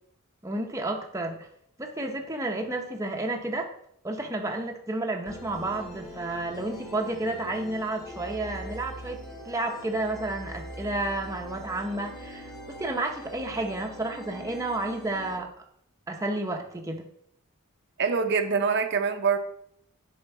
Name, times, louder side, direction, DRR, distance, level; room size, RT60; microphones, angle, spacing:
voice 1, 0.4-1.5 1.8-3.7 4.0-9.2 9.4-15.5 16.1-17.0, right 2 dB, 15° right, 2 dB, 0.7 m, -31 dB
sound 1, 5.3-15.4, equal, 20° left, 1.7 m, -42 dB
voice 2, 18.0-19.4, right 5 dB, 55° right, 6 dB, 0.6 m, -24 dB
6.9 x 5.0 x 4.5 m, 0.68 s
head